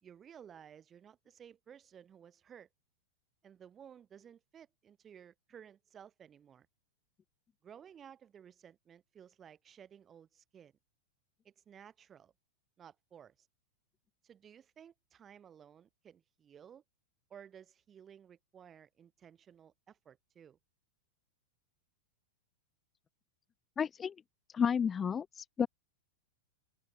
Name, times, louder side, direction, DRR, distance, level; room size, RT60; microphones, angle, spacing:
voice 1, 0.0-2.7 3.4-6.7 7.6-10.7 11.4-12.3 12.8-13.5 14.2-16.8 17.3-20.6, right 8 dB, 25° right, 4.7 m, -56 dB
voice 2, 23.8-24.1 24.5-25.7, left 7 dB, 25° left, 0.3 m, -31 dB
open air
hypercardioid pair, 100°, 0 cm